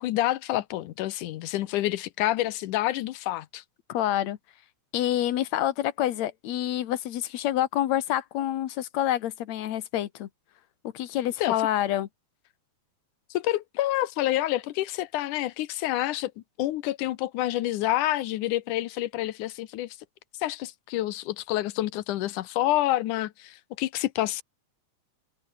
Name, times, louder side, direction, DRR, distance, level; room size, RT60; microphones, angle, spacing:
voice 1, 0.0-3.6 11.4-11.6 13.3-16.3 16.6-20.0 20.4-24.4, left 15 dB, 85° left, 2.4 m, -28 dB
voice 2, 3.9-4.4 4.9-10.3 10.9-12.1, left 12 dB, 65° left, 2.3 m, -27 dB
omnidirectional pair, 3.6 m